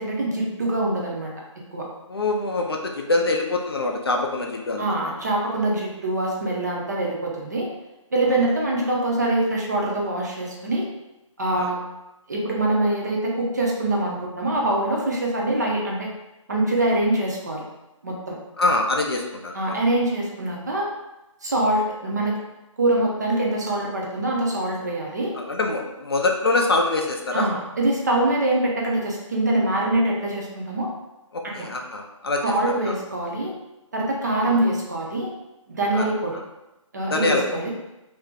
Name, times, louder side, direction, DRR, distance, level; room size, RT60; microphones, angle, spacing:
voice 1, 0.0-1.3 1.7-1.9 4.8-7.7 8.1-10.9 11.4-11.8 12.3-16.1 16.5-17.7 18.0-18.3 19.5-20.9 21.4-22.4 22.8-25.3 27.3-30.9 31.4-31.7 32.4-33.5 33.9-35.3 35.7-36.4 36.9-37.7, right 1 dB, 35° right, -2 dB, 0.5 m, -24 dB
voice 2, 2.1-4.8 11.6-11.7 18.6-19.8 25.4-27.5 31.3-32.4 32.8-33.0 35.9-36.0 37.1-37.6, left 2 dB, 45° left, 2 dB, 0.4 m, -24 dB
2.5 x 2.1 x 3.7 m, 0.96 s
figure-of-eight pair, 155°, 17 cm